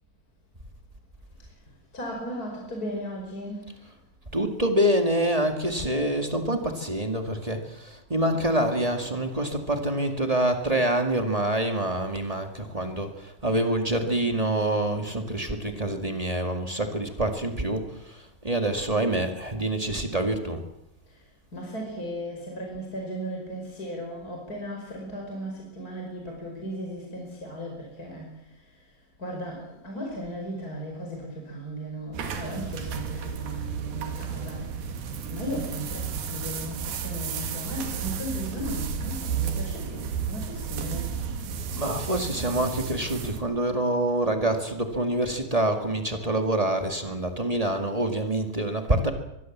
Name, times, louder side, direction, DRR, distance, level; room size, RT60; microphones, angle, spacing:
voice 1, 1.9-3.7 21.1-21.2 21.5-28.4 29.2-34.7 35.3-41.1, equal, 25° left, 0 dB, 5.5 m, -36 dB
voice 2, 4.3-20.6 41.7-49.1, right 1 dB, 20° right, 5 dB, 1.0 m, -26 dB
sound 1, 32.1-43.4, right 7 dB, 75° right, 3.9 m, -33 dB
23.5 x 22.0 x 7.4 m, 0.87 s
omnidirectional pair, 4.3 m